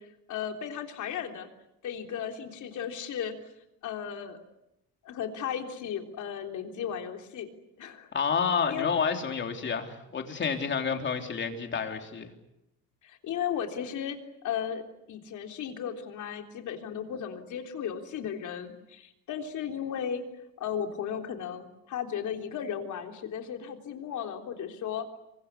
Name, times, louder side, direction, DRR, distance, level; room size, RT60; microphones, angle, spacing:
voice 1, 0.0-1.5 1.8-3.4 3.8-4.4 5.0-7.5 7.8-8.1 8.7-8.9 10.4-10.6 13.0-14.8 15.1-20.2 20.6-25.1, left 8 dB, 55° left, 4 dB, 3.6 m, -35 dB
voice 2, 8.1-12.3, left 6 dB, 30° left, 5 dB, 3.4 m, -29 dB
27.5 x 24.5 x 8.4 m, 0.86 s
cardioid pair, 165°, 35 cm